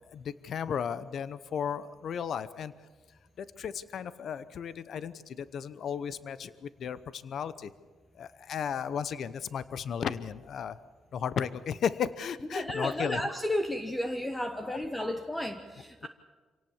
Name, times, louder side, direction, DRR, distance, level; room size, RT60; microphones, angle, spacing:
voice 1, 0.1-2.7 3.4-7.7 8.2-10.8 11.1-13.2 14.6-14.8 16.0-16.1, left 7 dB, 60° left, 15 dB, 0.8 m, -34 dB
voice 2, 12.5-16.1, left 1 dB, 10° left, 7 dB, 1.2 m, -33 dB
26.5 x 18.0 x 7.2 m, 1.4 s
cardioid pair, 120°, 0 cm